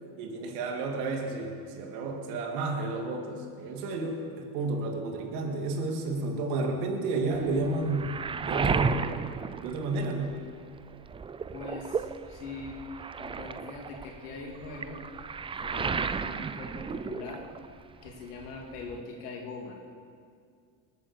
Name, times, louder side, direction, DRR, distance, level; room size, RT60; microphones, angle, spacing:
voice 1, 0.2-9.1 9.6-10.4, right 3 dB, 75° right, 2 dB, 2.9 m, -31 dB
Waves surf, 7.3-10.5 10.9-17.8 18.1-19.0, right 5 dB, 15° right, 0.3 m, -34 dB
voice 2, 11.5-12.8 13.2-15.0 15.6-17.5 18.0-19.7, left 3 dB, 90° left, 0 dB, 2.9 m, -42 dB
20.5 x 9.0 x 6.4 m, 2.2 s
supercardioid pair, 90°, 45 cm